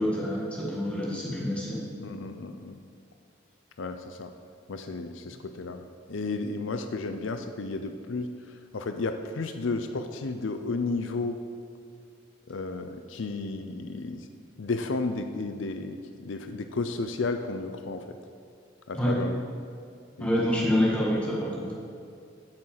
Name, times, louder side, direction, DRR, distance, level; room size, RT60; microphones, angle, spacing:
voice 1, 0.0-1.8 18.9-19.2 20.2-21.7, equal, 5° left, -5 dB, 1.9 m, -27 dB
voice 2, 2.0-2.7 3.8-4.3 4.7-5.8 6.1-8.3 8.7-11.4 12.5-14.2 14.6-16.0 16.2-18.0 18.9-19.4 20.2-20.4, left 3 dB, 80° left, 7 dB, 0.6 m, -32 dB
8.8 x 6.3 x 7.4 m, 2.3 s
head